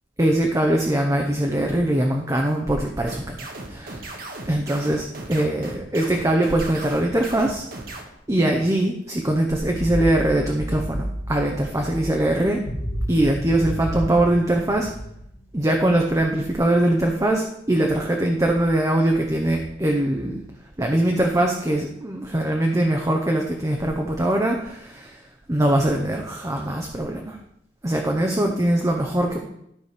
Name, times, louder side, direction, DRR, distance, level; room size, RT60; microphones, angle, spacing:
voice 1, 0.2-4.1 4.5-7.7 7.9-8.0 8.3-12.6 13.1-14.9 15.5-20.4 20.8-25.2 25.5-27.4 27.8-29.4, right 1 dB, 15° right, 1 dB, 0.8 m, -22 dB
sound 1, 3.1-8.0, right 2 dB, 50° right, 1.5 m, -36 dB
sound 2, 9.5-17.1 17.8-17.9 18.2-19.9, equal, 45° left, 1.8 m, -32 dB
12.5 x 5.0 x 5.0 m, 0.76 s
head